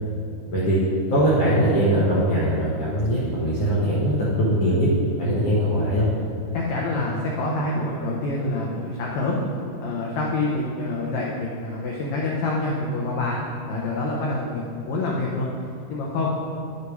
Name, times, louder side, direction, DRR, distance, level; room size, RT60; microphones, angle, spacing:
voice 1, 1.1-6.1, right 1 dB, 75° left, -8 dB, 1.4 m, -21 dB
voice 2, 6.5-9.4 9.8-13.4 13.7-15.5 15.9-16.3, left 2 dB, 90° left, -3 dB, 1.6 m, -26 dB
9.7 x 6.8 x 4.7 m, 2.6 s
omnidirectional pair, 4.6 m